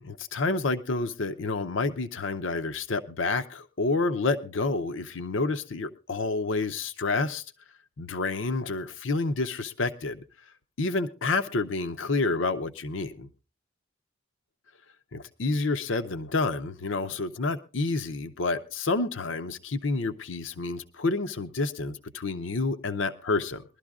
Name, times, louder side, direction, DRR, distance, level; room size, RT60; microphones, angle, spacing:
voice 1, 0.0-7.4 8.0-10.2 10.8-13.3 15.1-23.6, left 3 dB, 75° left, 0.7 m, -29 dB
21.5 x 12.5 x 2.4 m
head